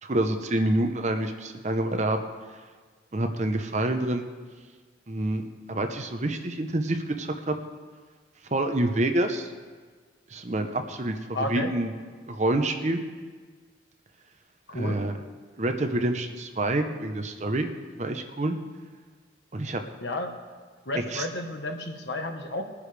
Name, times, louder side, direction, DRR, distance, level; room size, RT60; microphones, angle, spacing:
voice 1, 0.0-2.2 3.1-4.3 5.1-7.5 8.5-9.5 10.3-11.9 12.3-13.0 14.7-15.1 15.6-17.7 18.0-18.5 19.5-19.8 21.1-21.2, right 1 dB, 40° right, 6 dB, 0.8 m, -27 dB
voice 2, 11.3-11.7 14.7-15.0 20.0-20.3 20.9-22.6, left 2 dB, 65° left, 5 dB, 1.3 m, -31 dB
20.0 x 9.9 x 3.4 m, 1.5 s
head